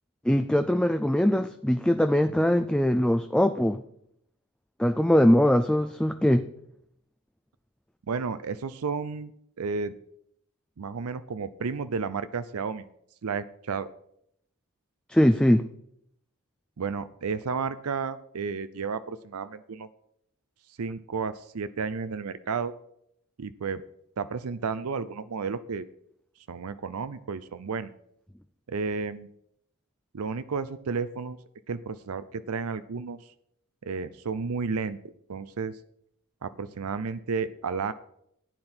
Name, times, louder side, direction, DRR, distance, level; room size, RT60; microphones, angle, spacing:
voice 1, 0.2-3.8 4.8-6.5 15.1-15.6, equal, 5° left, 8 dB, 0.4 m, -22 dB
voice 2, 8.1-9.3 9.6-9.9 10.8-12.8 13.2-13.9 16.8-19.9 20.8-22.7 23.4-23.8 24.2-25.8 26.5-27.9 28.7-29.3 30.1-31.4 31.7-33.2 33.8-35.0 35.3-35.8 36.4-37.9, right 5 dB, 80° right, 13 dB, 0.5 m, -32 dB
14.0 x 9.7 x 4.4 m, 0.73 s
head